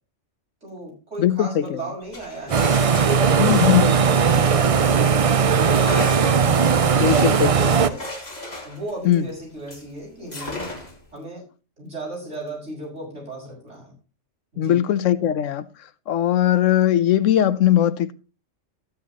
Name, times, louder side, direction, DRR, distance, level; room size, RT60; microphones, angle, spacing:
voice 1, 0.6-3.7 4.0-6.0 6.6-8.0 8.6-10.7 11.1-11.4 11.8-13.9 14.5-14.8, right 1 dB, 70° right, 6.4 m, -35 dB
voice 2, 1.2-1.8 3.4-4.0 7.0-7.7 9.0-9.3 14.6-15.7 16.1-18.1, left 11 dB, 85° left, 1.0 m, -19 dB
sound 1, 2.0-5.1 5.7-9.9 10.3-11.1, left 2 dB, 35° left, 2.3 m, -36 dB
sound 2, 2.5-7.9, right 6 dB, 45° right, 0.4 m, -18 dB
12.5 x 9.7 x 2.9 m
omnidirectional pair, 1.3 m